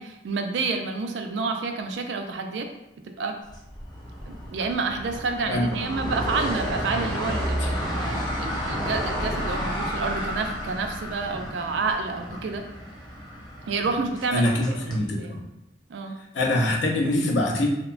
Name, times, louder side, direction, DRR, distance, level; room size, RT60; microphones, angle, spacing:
voice 1, 0.0-2.7 3.2-3.4 4.3-12.6 13.7-14.5 14.9-15.4 15.9-16.2, right 4 dB, 75° right, 5 dB, 0.3 m, -29 dB
sound 1, 3.5-15.0, equal, 25° left, 0.5 m, -31 dB
voice 2, 14.3-15.5 16.3-17.7, left 1 dB, 90° left, 0 dB, 0.5 m, -24 dB
2.8 x 2.1 x 2.4 m, 0.88 s
head